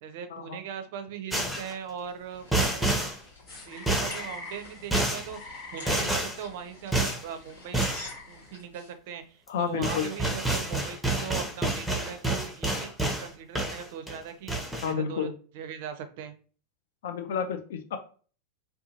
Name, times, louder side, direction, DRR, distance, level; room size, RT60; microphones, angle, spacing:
voice 1, 0.0-3.1 3.7-5.4 5.7-7.8 8.3-12.9 13.2-15.3 15.5-16.3, right 7 dB, 50° right, 9 dB, 0.4 m, -39 dB
sound 1, 1.3-1.7 2.5-3.2 3.9-4.3 4.9-5.3 5.9-6.4 6.9-7.2 7.7-8.1 9.5-9.6 9.8-13.3 13.5-14.2 14.5-14.9, right 2 dB, ahead, 0.6 m, -28 dB
sound 2, 1.8-8.9, left 1 dB, 80° left, 1.3 m, -48 dB
sound 3, 3.5-8.6, left 2 dB, 35° left, 1.0 m, -45 dB
voice 2, 9.5-10.1 14.8-15.3 17.0-18.0, left 7 dB, 55° left, 7 dB, 0.4 m, -30 dB
2.7 x 2.2 x 2.7 m, 0.40 s
figure-of-eight pair, 90°, 0 cm